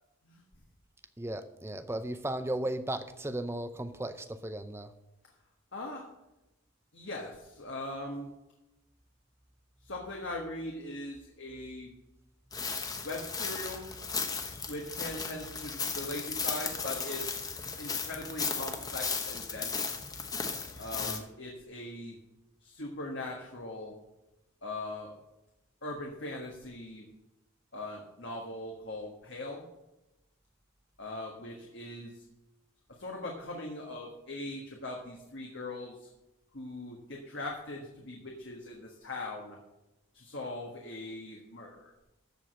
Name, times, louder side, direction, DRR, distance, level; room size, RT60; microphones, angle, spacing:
voice 1, 1.2-4.9 21.0-21.2, right 1 dB, 10° right, 10 dB, 0.6 m, -36 dB
voice 2, 5.7-6.1 6.9-8.3 9.8-11.9 13.0-13.9 14.7-17.5 17.8-20.0 20.8-22.2 22.6-23.9 24.6-25.1 25.8-27.1 27.7-29.6 31.0-32.2 33.0-36.1 36.5-39.6 40.1-41.9, left 2 dB, 55° left, 0 dB, 1.4 m, -40 dB
sound 1, 12.5-21.2, left 5 dB, 15° left, 1.0 m, -36 dB
14.0 x 4.9 x 7.6 m, 0.96 s
head